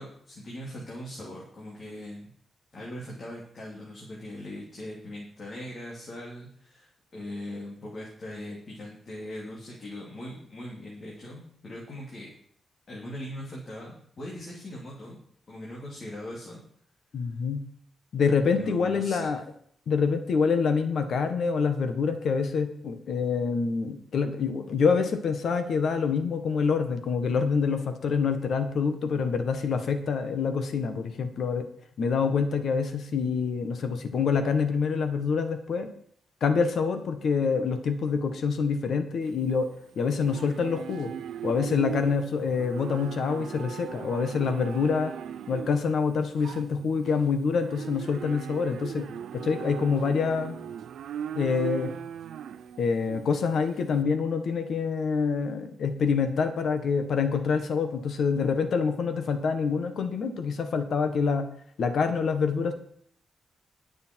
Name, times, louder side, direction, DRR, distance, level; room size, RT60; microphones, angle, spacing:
voice 1, 0.0-2.3 2.7-12.3 12.9-15.2 15.5-16.6 18.5-19.3, left 1 dB, 35° left, -4 dB, 3.1 m, -40 dB
voice 2, 17.1-17.6 18.1-19.4 19.9-31.6 32.0-35.9 36.4-39.7 39.9-41.1 41.4-45.1 45.5-49.1 49.3-50.6 51.3-51.9 52.8-61.5 61.8-62.7, left 5 dB, 60° left, 8 dB, 1.6 m, -26 dB
Livestock farm animals working animals, 39.2-54.0, right 9 dB, 85° right, 0.6 m, -39 dB
20.5 x 6.8 x 4.7 m, 0.63 s
wide cardioid pair, 160°, 0 cm